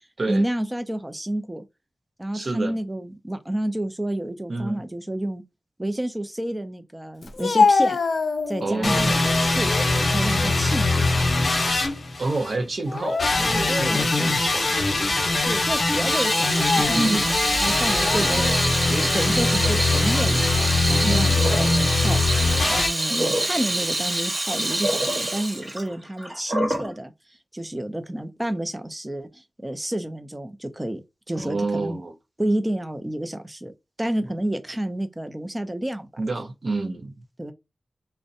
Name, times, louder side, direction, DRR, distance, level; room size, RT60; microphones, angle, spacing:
voice 1, 0.3-1.6 2.2-5.4 5.8-8.0 8.5-9.7 10.0-11.1 13.7-14.4 15.1-17.2 17.6-22.2 22.7-27.1 27.5-31.0 31.3-32.0 32.4-33.7 34.0-36.1 37.4-37.5, right 1 dB, 20° right, 0.5 m, -29 dB
voice 2, 2.3-2.7 4.5-4.8 8.6-9.2 12.2-14.7 16.9-17.2 21.0-21.4 31.4-32.1 36.2-37.1, right 2 dB, 65° right, 0.6 m, -28 dB
Speech, 7.2-8.9 9.4-9.9 10.4-11.6 11.9-12.1 12.9-13.9 14.4-14.5 15.3-15.6 16.4-17.1 17.9-18.6, left 4 dB, 75° left, 0.3 m, -25 dB
sound 1, 8.8-12.6 13.2-22.9, left 2 dB, 60° left, 0.8 m, -22 dB
Water tap faucet / Sink (filling or washing), 15.6-26.9, right 1 dB, 45° right, 1.1 m, -26 dB
2.5 x 2.1 x 2.7 m
cardioid pair, 55°, 0 cm